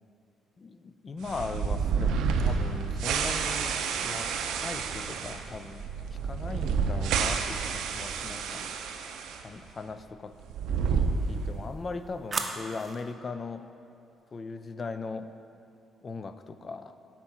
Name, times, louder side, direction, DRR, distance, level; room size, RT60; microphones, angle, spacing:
voice 1, 0.6-4.3 4.6-5.8 6.1-8.7 9.4-10.3 10.9-13.6 14.3-15.3 16.0-16.9, left 4 dB, 40° left, 10 dB, 0.4 m, -39 dB
sound 1, 1.2-9.4 9.7-9.8 10.4-11.8, right 5 dB, 85° right, 0.4 m, -30 dB
sound 2, 7.9-8.6 11.0-13.1, right 3 dB, 30° right, 0.7 m, -39 dB
8.2 x 4.4 x 5.8 m, 2.6 s
cardioid pair, 90°, 0 cm